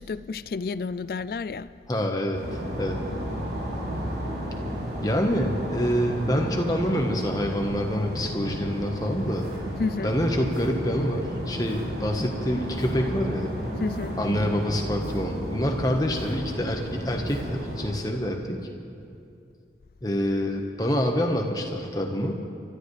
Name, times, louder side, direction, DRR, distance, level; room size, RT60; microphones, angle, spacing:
voice 1, 0.0-1.7 9.8-10.1 13.8-14.2, left 4 dB, 55° left, 0.3 m, -30 dB
voice 2, 1.9-3.0 5.0-9.5 10.0-13.5 14.2-18.6 20.0-22.4, equal, 20° left, 1.3 m, -26 dB
sound 1, 2.3-17.9, equal, 75° right, 3.5 m, -33 dB
sound 2, 9.3-9.6 10.4-10.8 11.5-11.8 12.7-13.1 13.7-14.1 14.9-15.3 16.0-16.5 17.2-17.6, right 2 dB, 45° right, 3.4 m, -50 dB
27.5 x 13.5 x 3.3 m
head